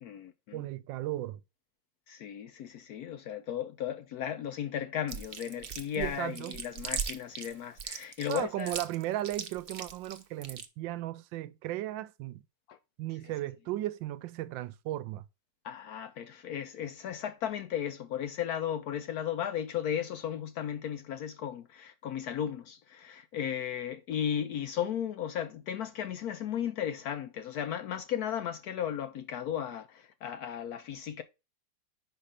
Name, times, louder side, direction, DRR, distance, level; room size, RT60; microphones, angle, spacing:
voice 1, 0.0-0.6 2.1-8.8 12.7-12.8 15.6-31.2, left 9 dB, 75° left, 0.9 m, -35 dB
voice 2, 0.5-1.4 6.0-6.6 8.3-12.4 13.0-15.2, right 14 dB, 85° right, 1.3 m, -36 dB
Chewing mastication, 5.1-10.6, right 7 dB, 65° right, 0.5 m, -38 dB
5.4 x 4.4 x 4.9 m
omnidirectional pair, 2.0 m